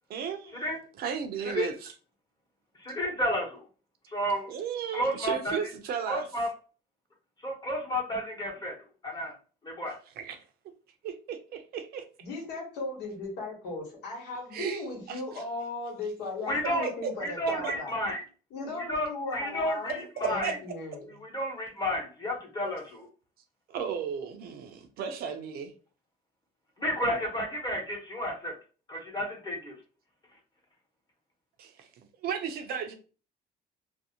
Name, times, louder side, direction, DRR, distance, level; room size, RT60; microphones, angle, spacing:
voice 1, 0.1-0.7 1.0-1.9 4.5-6.2 10.2-10.4 11.0-12.0 14.5-14.8 15.1-15.2 16.8-17.1 17.6-17.7 19.5-20.6 23.7-25.7 27.1-27.2 31.6-32.9, right 7 dB, 65° right, 0.5 m, -35 dB
voice 2, 2.8-3.6 4.1-4.5 4.9-5.6 6.1-6.5 7.4-8.7 9.0-9.3 9.6-9.9 16.5-16.9 17.2-18.2 18.9-20.5 21.2-23.1 26.8-28.5 28.9-29.7, equal, 25° left, 1.0 m, -31 dB
voice 3, 12.2-17.9 18.5-21.1, left 3 dB, 85° left, 1.1 m, -37 dB
2.5 x 2.0 x 2.8 m
cardioid pair, 110°, 17 cm